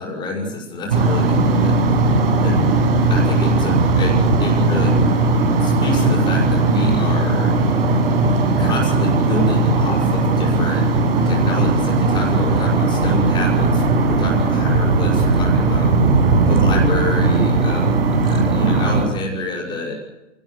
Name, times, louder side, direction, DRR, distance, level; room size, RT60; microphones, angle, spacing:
voice 1, 0.0-2.1 2.4-2.8 3.1-5.2 5.6-8.0 8.6-10.9 11.2-16.0 16.5-20.0, left 2 dB, 10° left, -1 dB, 6.3 m, -27 dB
sound 1, 0.9-19.1, right 3 dB, 50° right, 6.3 m, -17 dB
28.0 x 19.0 x 8.1 m, 1.0 s
hypercardioid pair, 170°, 38 cm